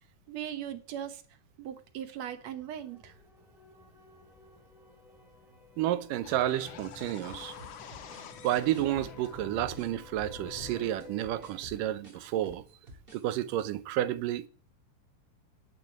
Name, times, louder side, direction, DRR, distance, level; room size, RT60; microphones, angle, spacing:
voice 1, 0.3-1.2 1.6-3.2, right 10 dB, 65° right, 2.0 m, -39 dB
sound 1, 1.8-11.6, left 2 dB, ahead, 2.4 m, -54 dB
voice 2, 5.8-7.6 8.4-12.6 13.1-14.5, right 13 dB, 80° right, 2.4 m, -31 dB
sound 2, 6.2-12.5, left 7 dB, 65° left, 2.6 m, -47 dB
sound 3, 7.3-9.9 10.2-13.2 13.5-13.7, equal, 20° right, 2.4 m, -51 dB
15.0 x 6.8 x 9.9 m
omnidirectional pair, 3.9 m